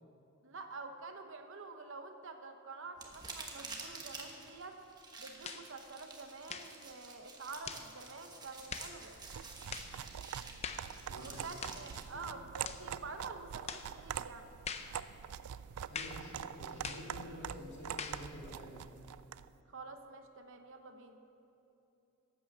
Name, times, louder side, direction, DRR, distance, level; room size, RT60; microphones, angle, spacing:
voice 1, 0.4-4.8 5.2-9.2 11.2-14.5 19.7-21.2, right 3 dB, 60° right, 6 dB, 0.9 m, -48 dB
sound 1, 3.0-12.1, right 3 dB, 20° right, 1.2 m, -50 dB
sound 2, 5.4-5.7 6.5-6.8 7.6-7.9 8.7-8.9 9.7-9.9 10.6-10.9 11.6-11.9 12.6-12.9 13.7-13.9 14.6-14.9 15.9-16.2 16.8-17.1 18.0-18.2, left 6 dB, 30° left, 0.6 m, -42 dB
sound 3, 9.2-19.5, right 9 dB, 80° right, 0.3 m, -45 dB
voice 2, 11.1-11.5 12.1-12.3 12.8-12.9 15.9-18.9, left 1 dB, 50° left, -4 dB, 3.0 m, -49 dB
12.0 x 8.7 x 7.3 m, 2.9 s
head